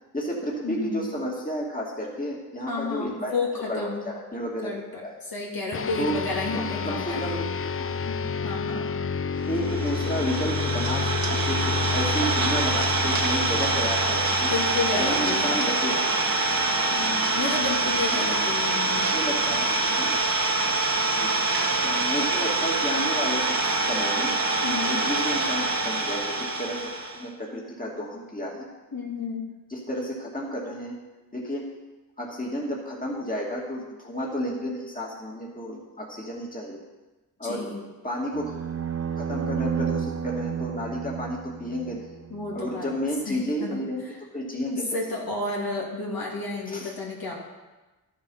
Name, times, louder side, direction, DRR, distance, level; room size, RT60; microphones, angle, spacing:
voice 1, 0.1-3.3 3.7-4.7 5.0-5.2 6.0-6.2 6.5-7.5 7.8-7.9 9.1-14.5 15.0-16.1 18.1-18.2 19.1-20.2 21.2-21.3 21.8-24.3 24.7-28.7 29.7-30.9 31.3-31.6 32.2-36.8 37.4-37.7 38.0-38.5 39.2-42.1 42.5-45.0 46.7-46.9, equal, 20° left, -3 dB, 2.4 m, -32 dB
voice 2, 0.6-1.0 2.7-4.0 4.6-7.2 8.1-8.9 14.5-15.6 16.9-19.1 24.6-25.0 28.9-29.5 37.4-37.8 42.3-42.9 43.3-43.8 44.7-47.3, left 3 dB, 60° left, -3 dB, 2.6 m, -31 dB
sound 1, 5.7-15.4, left 5 dB, 35° left, 0.4 m, -30 dB
Idling, 9.5-27.2, right 2 dB, 60° right, 1.8 m, -25 dB
sound 2, 38.3-42.6, right 7 dB, 40° right, 0.5 m, -31 dB
12.5 x 7.4 x 5.6 m, 1.1 s
wide cardioid pair, 75°, 40 cm